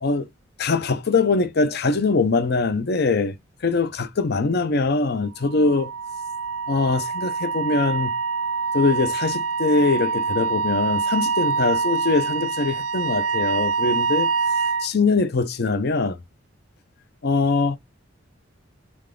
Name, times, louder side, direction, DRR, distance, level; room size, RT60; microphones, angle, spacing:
voice 1, 0.6-3.3 3.6-5.9 6.7-8.1 8.7-14.3 14.8-16.2 17.2-17.8, left 3 dB, 55° left, 0.6 m, -22 dB
Wind instrument woodwind instrument, 5.4-14.9, right 5 dB, 85° right, 0.6 m, -25 dB
3.8 x 3.5 x 3.7 m
head